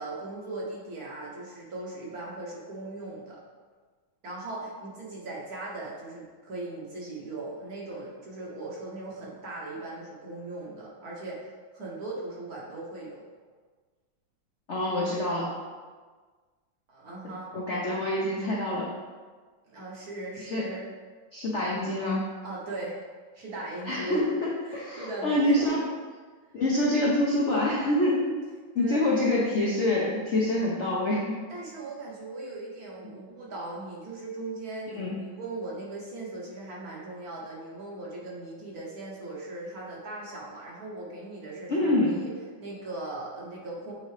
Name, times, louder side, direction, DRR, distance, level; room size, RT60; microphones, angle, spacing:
voice 1, 0.0-3.4 4.2-13.2 16.9-17.5 19.7-20.9 22.4-23.0 23.3-24.2 24.6-25.8 28.8-29.0 31.5-42.3 42.6-43.9, right 2 dB, 55° right, -4 dB, 1.4 m, -39 dB
voice 2, 14.7-15.5 17.5-18.9 20.4-20.6 21.3-22.2 23.9-25.8 26.5-28.2 28.7-31.4 34.9-35.2 41.7-42.1, left 1 dB, 60° left, -6 dB, 0.7 m, -26 dB
8.0 x 3.8 x 3.2 m, 1.5 s
omnidirectional pair, 2.2 m